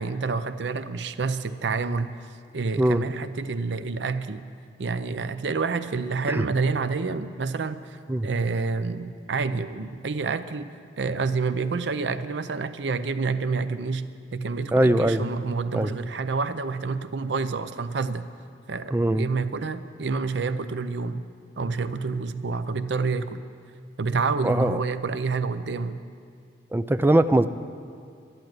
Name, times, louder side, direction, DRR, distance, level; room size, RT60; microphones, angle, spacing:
voice 1, 0.0-2.1 2.5-4.5 4.8-18.3 18.7-21.2 21.6-23.4 24.0-26.0, right 4 dB, 75° right, 12 dB, 0.6 m, -28 dB
voice 2, 14.7-15.2 15.7-15.9 18.9-19.3 24.4-24.8 26.7-27.5, right 1 dB, 10° right, 11 dB, 0.4 m, -21 dB
12.0 x 11.0 x 7.8 m, 2.4 s
head